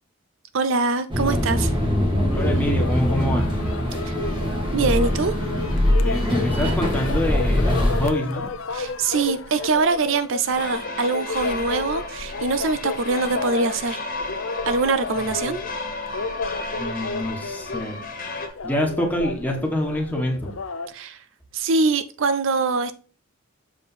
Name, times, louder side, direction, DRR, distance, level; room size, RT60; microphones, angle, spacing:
voice 1, 0.5-1.7 4.0-4.1 4.7-5.3 8.7-14.0 14.7-15.6 20.9-21.2 21.5-22.9, right 4 dB, 65° right, 0.5 m, -23 dB
sound 1, 1.1-8.1, left 1 dB, 20° right, 1.8 m, -22 dB
sound 2, 2.3-20.9, left 4 dB, 70° left, 0.7 m, -33 dB
voice 2, 2.3-3.6 3.9-4.3 5.7-8.5 16.7-18.0 18.6-20.6, left 1 dB, 10° left, 1.5 m, -26 dB
sound 3, 10.5-18.5, left 3 dB, 40° left, 1.4 m, -33 dB
6.8 x 5.0 x 4.2 m
head